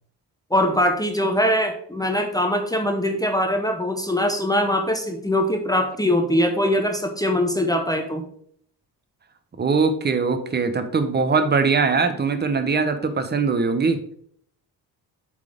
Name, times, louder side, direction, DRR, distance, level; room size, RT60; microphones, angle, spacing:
voice 1, 0.5-8.2, left 1 dB, 10° left, 4 dB, 0.8 m, -22 dB
voice 2, 9.6-14.0, right 4 dB, 25° right, 9 dB, 0.9 m, -21 dB
7.3 x 4.1 x 4.9 m, 0.64 s
cardioid pair, 110°, 38 cm